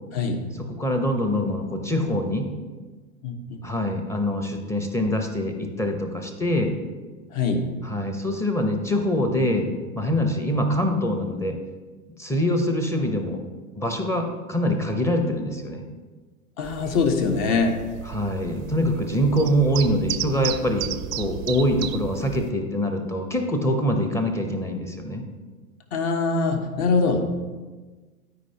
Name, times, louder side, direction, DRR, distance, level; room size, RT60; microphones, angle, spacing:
voice 1, 0.1-0.5 3.2-3.6 7.3-7.7 16.6-17.8 25.9-27.2, left 4 dB, 40° left, 5 dB, 1.2 m, -23 dB
voice 2, 0.7-2.5 3.6-6.8 7.8-9.7 9.9-11.6 12.2-13.4 13.7-15.8 18.1-25.2, equal, 5° left, 3 dB, 0.7 m, -24 dB
sound 1, 16.6-22.5, right 11 dB, 65° right, 0.6 m, -34 dB
12.5 x 5.0 x 2.8 m, 1.3 s
hypercardioid pair, 100°, 44 cm